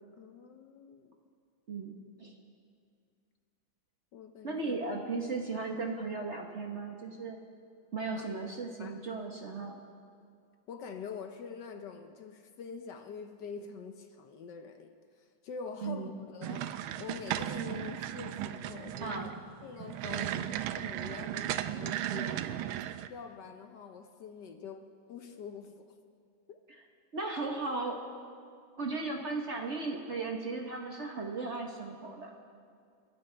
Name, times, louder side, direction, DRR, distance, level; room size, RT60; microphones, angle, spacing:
voice 1, 0.2-1.2 4.1-4.7 8.1-9.0 10.7-19.3 19.6-22.7 23.1-26.0 26.5-26.6, left 6 dB, 65° left, 6 dB, 1.3 m, -45 dB
voice 2, 1.7-2.3 4.4-7.4 7.9-9.8 15.8-16.2 19.0-19.3 20.2-20.4 27.1-28.0 28.8-32.3, right 3 dB, 40° right, 1 dB, 1.2 m, -36 dB
sound 1, 16.4-23.1, right 12 dB, 85° right, 1.4 m, -36 dB
29.5 x 12.5 x 3.4 m, 2.3 s
omnidirectional pair, 2.2 m